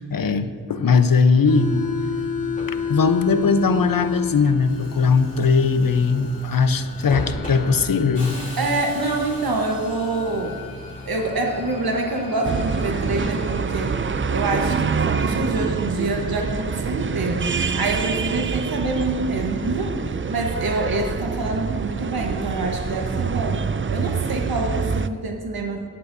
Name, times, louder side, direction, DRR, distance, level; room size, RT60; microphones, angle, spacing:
voice 1, 0.0-1.7 2.9-8.4, left 5 dB, 70° left, 10 dB, 0.8 m, -19 dB
Subway metro underground, 1.4-15.8, left 4 dB, 20° left, 3.2 m, -32 dB
voice 2, 8.6-10.6 11.1-13.9 14.3-17.5 17.8-23.6 23.9-25.8, right 2 dB, 80° right, 1 dB, 1.2 m, -26 dB
sound 1, 12.4-25.1, right 5 dB, 35° right, 0.5 m, -26 dB
17.5 x 11.0 x 2.7 m, 2.1 s
cardioid pair, 45°, 36 cm